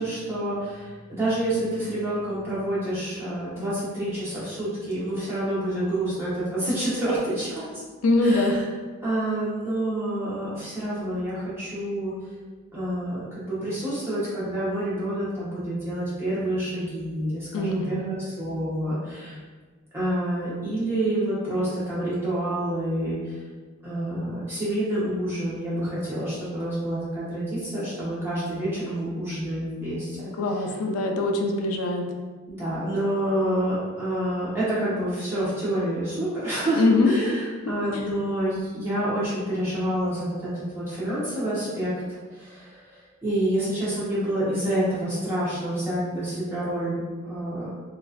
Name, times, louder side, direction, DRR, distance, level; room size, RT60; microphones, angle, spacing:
voice 1, 0.0-7.7 8.2-8.6 9.0-12.1 12.7-19.4 19.9-23.4 23.8-30.7 32.5-41.9 42.3-47.7, right 1 dB, 10° right, -10 dB, 1.0 m, -28 dB
voice 2, 8.0-8.6 17.5-18.3 30.4-32.0 36.8-37.1, left 2 dB, 80° left, 2 dB, 0.4 m, -23 dB
3.0 x 2.5 x 2.4 m, 1.4 s
head